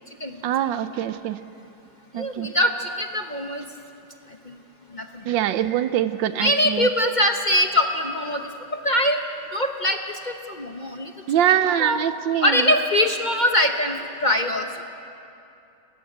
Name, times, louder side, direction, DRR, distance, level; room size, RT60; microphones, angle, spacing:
voice 1, 0.4-1.4 2.1-2.5 5.3-6.9 11.3-12.7, right 11 dB, 70° right, 13 dB, 1.2 m, -23 dB
voice 2, 2.2-3.6 4.5-4.6 4.9-5.2 6.4-8.4 8.8-9.2 9.5-10.0 10.2-11.1 11.8-12.0 12.4-14.8, left 1 dB, 55° left, 5 dB, 0.5 m, -22 dB
28.5 x 14.5 x 7.9 m, 2.7 s
omnidirectional pair, 2.4 m